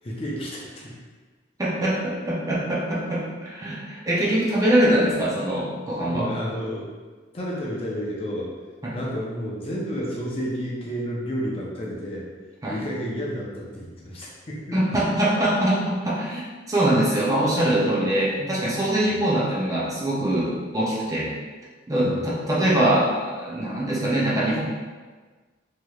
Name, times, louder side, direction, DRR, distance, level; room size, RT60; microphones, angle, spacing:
voice 1, 0.0-1.0 6.1-6.9 7.3-8.5 8.9-12.2 12.7-14.8 19.0-19.2 22.0-22.2, equal, 30° left, -4 dB, 0.5 m, -31 dB
voice 2, 1.6-6.3 8.8-9.0 12.6-12.8 14.7-21.3 21.9-24.6, right 1 dB, 20° right, -6 dB, 0.5 m, -23 dB
3.1 x 2.8 x 2.3 m, 1.4 s
head